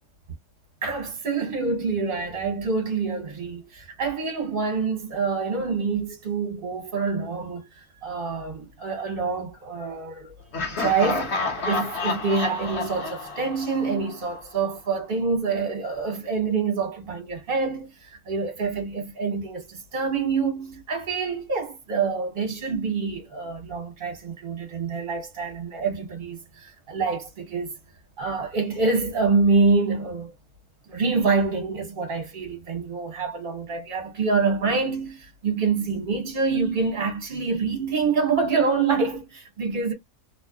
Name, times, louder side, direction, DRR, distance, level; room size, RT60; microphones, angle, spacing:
voice 1, 0.8-10.3 10.8-27.7 28.2-30.3 30.9-39.9, right 4 dB, 40° right, 1.2 m, -26 dB
Laughter, 10.5-14.4, left 3 dB, 55° left, 1.1 m, -29 dB
2.9 x 2.2 x 2.3 m
omnidirectional pair, 1.5 m